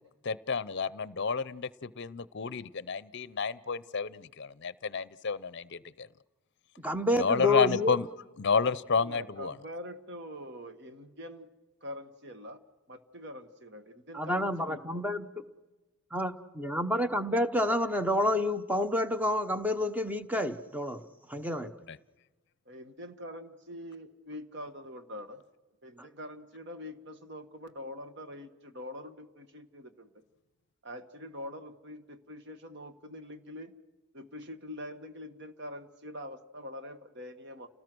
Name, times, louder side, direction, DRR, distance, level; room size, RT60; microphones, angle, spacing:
voice 1, 0.2-6.1 7.2-8.1 8.4-9.5 21.9-22.0, left 5 dB, 50° left, 18 dB, 0.6 m, -30 dB
voice 2, 6.8-8.0 14.1-15.3 16.1-21.0 21.3-21.7 26.0-26.1, left 1 dB, 5° right, 9 dB, 0.9 m, -29 dB
voice 3, 8.9-11.5 11.8-12.6 12.9-15.2 22.7-25.4 25.8-30.2 30.8-33.7 34.1-37.7, left 1 dB, 50° right, 9 dB, 1.5 m, -44 dB
29.5 x 18.5 x 6.2 m, 1.2 s
head